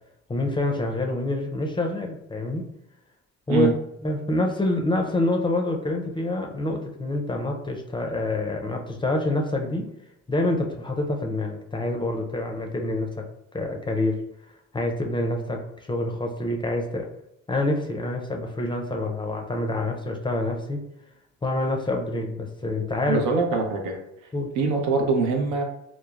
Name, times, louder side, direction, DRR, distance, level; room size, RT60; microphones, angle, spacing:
voice 1, 0.3-2.7 3.5-3.7 4.0-9.9 10.3-13.2 13.5-14.2 14.7-15.6 15.9-17.1 17.5-20.8 21.4-23.2 24.3-24.5, left 2 dB, 15° left, 2 dB, 0.4 m, -26 dB
voice 2, 23.1-24.0 24.6-25.6, right 4 dB, 85° right, 2 dB, 0.6 m, -23 dB
3.1 x 2.0 x 2.3 m, 0.82 s
cardioid pair, 90°, 30 cm